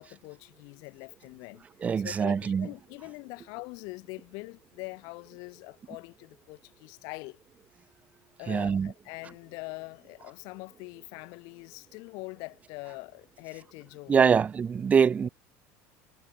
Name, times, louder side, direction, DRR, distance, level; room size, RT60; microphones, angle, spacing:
voice 1, 0.0-1.6 2.0-7.4 8.4-14.4, left 29 dB, 65° left, 4.1 m, -43 dB
voice 2, 1.8-2.7 8.5-8.9 14.1-15.3, right 6 dB, 20° right, 0.4 m, -24 dB
supercardioid pair, 130°, 7 cm